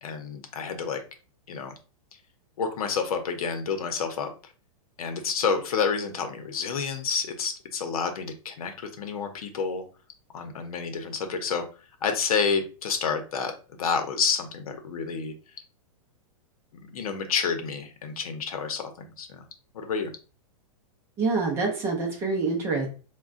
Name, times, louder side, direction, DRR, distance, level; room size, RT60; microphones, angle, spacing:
voice 1, 0.0-1.0 1.5-1.7 2.6-4.5 5.0-9.8 10.3-11.7 12.0-13.5 13.8-15.3 16.9-19.5 19.7-20.1, left 5 dB, 85° left, 6 dB, 0.7 m, -29 dB
voice 2, 21.2-22.9, right 3 dB, 15° right, 0 dB, 0.5 m, -26 dB
3.7 x 2.2 x 2.4 m, 0.35 s
supercardioid pair, 165°, 18 cm